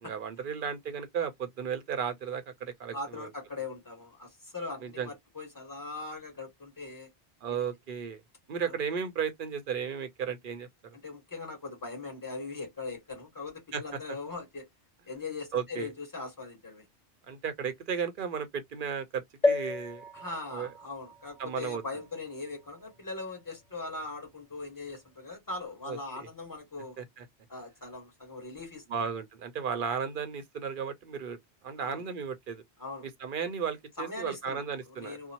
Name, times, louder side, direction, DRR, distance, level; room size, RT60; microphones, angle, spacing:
voice 1, 0.0-3.3 4.8-5.1 7.4-8.2 8.5-11.0 13.7-14.0 15.5-15.9 17.3-20.0 20.5-20.7 21.4-21.8 25.9-26.3 27.0-27.3 28.9-31.4 31.6-32.6 33.2-35.2, right 7 dB, 55° right, 0.7 m, -34 dB
voice 2, 2.9-7.1 7.5-7.6 8.6-8.7 11.0-14.7 15.1-16.9 20.1-27.0 27.5-29.1 31.8-32.1 32.8-33.1 34.0-35.3, left 3 dB, 20° left, 1.3 m, -40 dB
sound 1, 19.4-23.1 23.7-23.8 24.0-24.1, left 2 dB, 35° left, 1.2 m, -33 dB
2.7 x 2.0 x 2.8 m
omnidirectional pair, 1.1 m